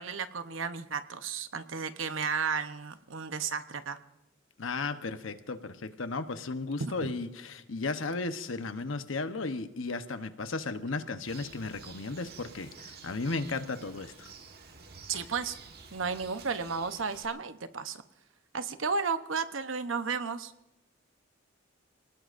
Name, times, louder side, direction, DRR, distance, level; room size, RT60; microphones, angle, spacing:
voice 1, 0.0-4.0 6.8-7.1 15.1-15.6 15.9-18.0 18.5-20.5, right 5 dB, 80° right, 10 dB, 0.9 m, -33 dB
voice 2, 4.6-14.3, left 3 dB, 80° left, 9 dB, 1.0 m, -35 dB
Bird, 11.3-17.3, right 5 dB, 55° right, 1.4 m, -50 dB
29.0 x 19.0 x 2.6 m, 0.90 s
head